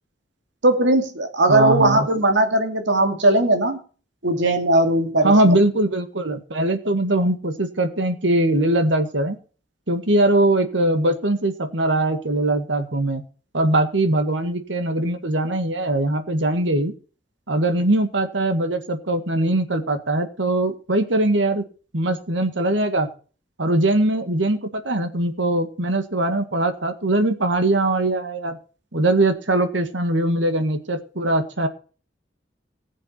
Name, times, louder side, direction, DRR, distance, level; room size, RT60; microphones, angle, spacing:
voice 1, 0.6-3.8 4.2-5.6, right 1 dB, 75° right, 4 dB, 2.6 m, -19 dB
voice 2, 1.5-2.1 5.2-9.4 9.9-13.2 13.5-16.9 17.5-21.6 21.9-23.1 23.6-28.6 28.9-31.7, right 1 dB, 90° right, 8 dB, 1.8 m, -21 dB
19.0 x 7.5 x 4.4 m, 0.38 s
head